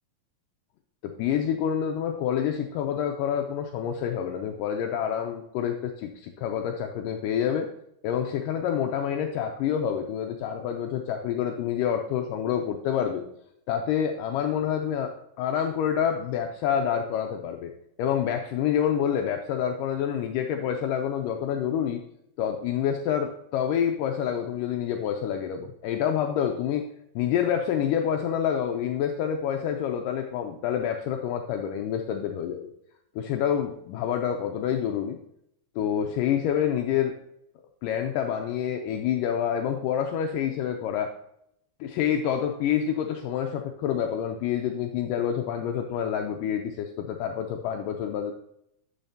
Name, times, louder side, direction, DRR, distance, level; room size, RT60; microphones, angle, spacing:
voice 1, 1.0-7.7 8.0-13.2 13.7-17.7 18.0-22.0 22.4-26.9 27.2-32.7 33.2-35.2 35.8-37.2 37.8-41.1 41.8-48.3, left 9 dB, 80° left, 4 dB, 2.1 m, -27 dB
10.0 x 6.5 x 2.8 m, 0.74 s
omnidirectional pair, 4.2 m